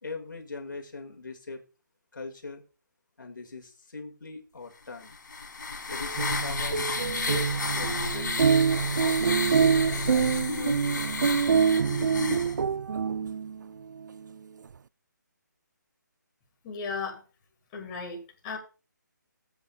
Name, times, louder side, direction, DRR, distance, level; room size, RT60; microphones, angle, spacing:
voice 1, 0.0-1.6 2.1-2.6 3.2-5.2 5.9-8.4 8.9-10.6, left 3 dB, 85° left, 4 dB, 2.0 m, -41 dB
Female Ghost Crying, 5.0-12.6, left 4 dB, 70° left, 2.6 m, -32 dB
sound 1, 6.0-13.6, right 6 dB, 70° right, 0.4 m, -26 dB
voice 2, 16.6-17.2 17.7-18.6, left 4 dB, 20° left, -1 dB, 2.3 m, -35 dB
17.5 x 8.1 x 2.3 m, 0.33 s
hypercardioid pair, 170°, 10 cm